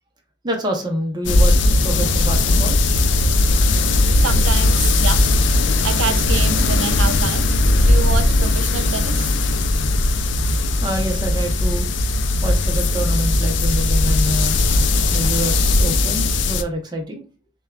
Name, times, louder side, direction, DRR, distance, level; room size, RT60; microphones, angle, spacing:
voice 1, 0.4-2.8 10.8-11.9 12.4-14.6 15.1-17.2, right 1 dB, 20° right, 0.7 m, -26 dB
sound 1, 1.2-16.6, left 2 dB, 65° left, 0.4 m, -18 dB
voice 2, 3.9-5.2 5.8-9.3, right 6 dB, 80° right, 0.4 m, -28 dB
6.8 x 2.3 x 2.3 m
head